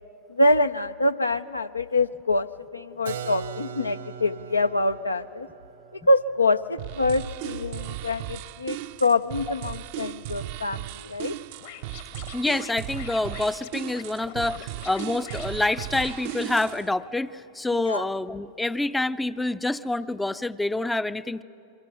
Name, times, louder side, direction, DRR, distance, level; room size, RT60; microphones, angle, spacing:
voice 1, 0.3-2.5 2.7-5.5 5.9-11.4 17.7-18.0, left 2 dB, 80° left, 11 dB, 0.5 m, -25 dB
Keyboard (musical), 3.1-8.7, right 8 dB, 65° right, 1.0 m, -41 dB
sound 1, 6.8-16.9, right 15 dB, 50° right, 0.6 m, -36 dB
Scratching (performance technique), 11.6-17.1, left 11 dB, 55° left, 1.5 m, -44 dB
voice 2, 12.3-21.4, left 2 dB, 5° left, 15 dB, 0.5 m, -27 dB
29.0 x 23.5 x 6.2 m, 3.0 s
figure-of-eight pair, 90°, 0 cm